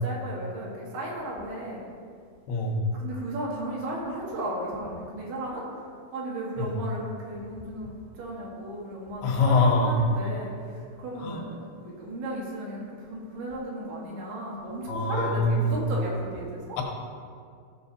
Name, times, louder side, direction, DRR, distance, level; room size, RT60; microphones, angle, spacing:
voice 1, 0.0-1.8 2.9-7.9 8.2-16.8, right 1 dB, 75° right, -4 dB, 3.9 m, -35 dB
voice 2, 2.5-2.8 6.6-6.7 9.2-9.9 11.2-11.4 14.9-15.8 16.8-16.9, left 2 dB, 80° left, 0 dB, 3.1 m, -24 dB
15.0 x 6.4 x 4.1 m, 2.2 s
omnidirectional pair, 4.7 m